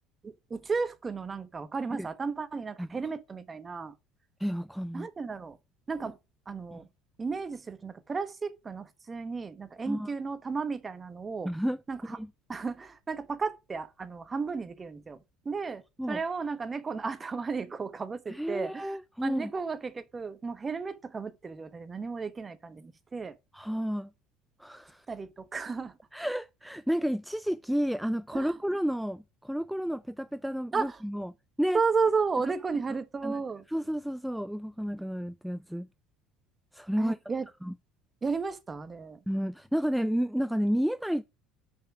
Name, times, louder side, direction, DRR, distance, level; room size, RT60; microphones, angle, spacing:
voice 1, 0.2-3.9 4.9-5.6 5.9-6.2 6.5-6.9 7.2-11.5 11.9-12.2 12.5-23.4 25.1-26.0 28.3-28.6 30.7-31.0 31.7-33.6 37.0-37.5 38.2-39.2, right 4 dB, 30° right, 1.0 m, -33 dB
voice 2, 4.4-5.1 6.0-6.1 6.7-6.8 9.9-10.1 11.4-11.8 12.2-12.3 16.0-16.2 18.3-19.5 23.5-24.1 24.6-25.1 26.1-31.3 31.6-31.8 33.2-33.4 33.7-35.9 36.7-37.2 37.6-37.7 39.3-41.2, equal, ahead, 0.3 m, -31 dB
5.6 x 5.5 x 4.7 m
hypercardioid pair, 75°, 0 cm